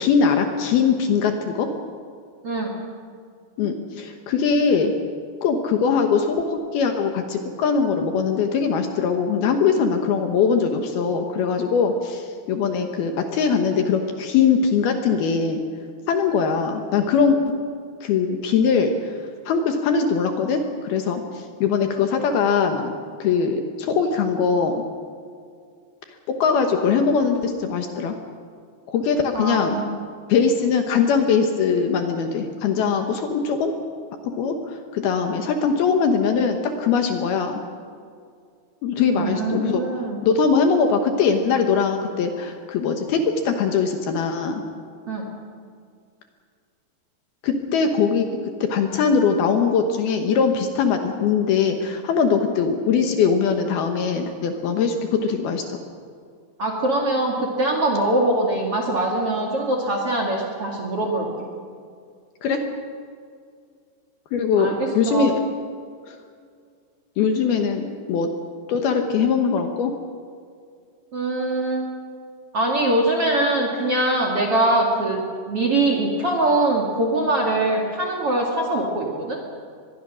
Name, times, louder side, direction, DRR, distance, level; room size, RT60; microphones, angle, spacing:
voice 1, 0.0-1.7 3.6-4.9 5.4-15.6 16.1-17.6 18.0-19.2 19.5-22.9 23.2-24.8 26.3-28.2 28.9-29.8 30.3-33.7 34.4-37.6 38.8-39.8 40.2-44.6 47.4-48.3 48.6-55.8 62.4-62.6 64.3-65.3 66.1-66.2 67.2-68.3 68.7-69.9, left 6 dB, 65° left, 5 dB, 2.8 m, -21 dB
voice 2, 29.3-29.9 39.1-40.2 45.1-45.2 56.6-61.3 64.6-65.3 71.1-71.9 72.5-75.2 75.5-79.4, right 2 dB, 40° right, 1 dB, 2.3 m, -22 dB
23.5 x 21.0 x 6.3 m, 2.2 s
omnidirectional pair, 5.3 m